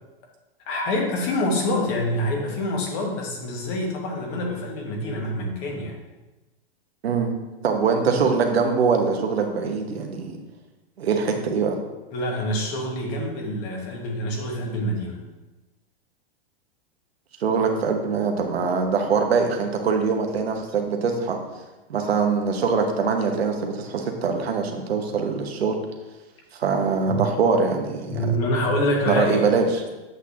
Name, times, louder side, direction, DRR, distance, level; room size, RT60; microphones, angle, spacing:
voice 1, 0.7-6.0 12.1-15.2 17.8-17.9 27.1-27.2 28.1-29.5, left 1 dB, 45° left, 0 dB, 1.8 m, -26 dB
voice 2, 7.6-10.4 11.0-11.8 17.4-21.4 21.9-25.7 26.6-28.3 29.1-29.7, right 5 dB, 90° right, 3 dB, 1.2 m, -23 dB
7.9 x 6.2 x 2.9 m, 1.1 s
hypercardioid pair, 125°, 30 cm